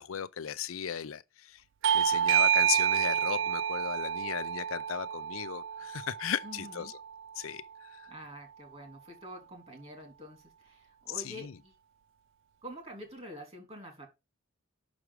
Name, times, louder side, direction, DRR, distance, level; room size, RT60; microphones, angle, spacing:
voice 1, 0.0-1.6 1.9-6.9 7.4-8.1 11.2-11.5, left 8 dB, 85° left, 0.5 m, -36 dB
Bell / Doorbell, 1.8-7.0, right 9 dB, 65° right, 0.3 m, -29 dB
Chink clink, 2.7-7.1 7.4-7.8, right 3 dB, 15° left, 1.1 m, -57 dB
voice 2, 6.4-6.9 8.1-11.8 12.6-14.1, equal, 30° right, 2.8 m, -47 dB
6.1 x 6.1 x 4.8 m
head